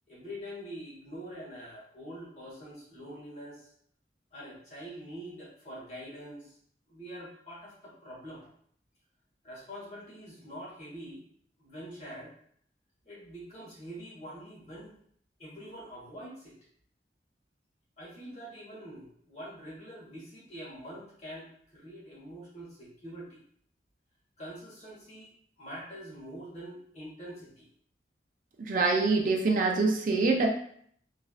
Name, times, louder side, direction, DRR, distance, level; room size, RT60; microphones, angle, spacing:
voice 1, 0.1-3.7 4.3-6.6 6.9-8.5 9.4-11.2 11.6-12.3 13.0-14.9 15.4-16.6 18.0-23.4 24.4-25.3 25.6-27.7, equal, 40° left, -6 dB, 1.2 m, -45 dB
voice 2, 28.6-30.5, right 3 dB, 50° right, 2 dB, 0.4 m, -25 dB
3.1 x 2.4 x 2.3 m, 0.63 s
head